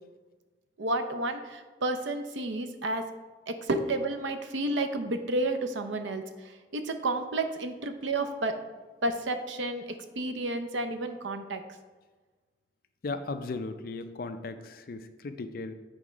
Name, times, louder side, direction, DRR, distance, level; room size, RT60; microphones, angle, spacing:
voice 1, 0.8-3.1 3.5-8.5 9.0-11.6, right 2 dB, 80° right, 7 dB, 0.6 m, -31 dB
voice 2, 13.0-15.7, left 3 dB, 50° left, 9 dB, 0.4 m, -36 dB
7.8 x 3.6 x 5.0 m, 1.3 s
head